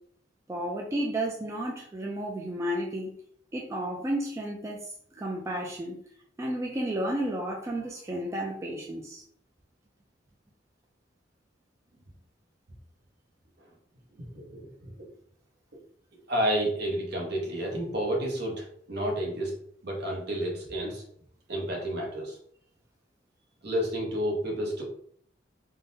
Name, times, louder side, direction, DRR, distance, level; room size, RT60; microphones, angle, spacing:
voice 1, 0.5-3.1 3.5-6.0 6.4-9.2, right 1 dB, 15° right, -1 dB, 0.3 m, -32 dB
voice 2, 14.2-14.9 16.3-19.5 19.8-21.0 21.5-22.4 23.6-24.8, equal, 60° right, 0 dB, 0.9 m, -30 dB
3.6 x 2.1 x 2.6 m, 0.62 s
head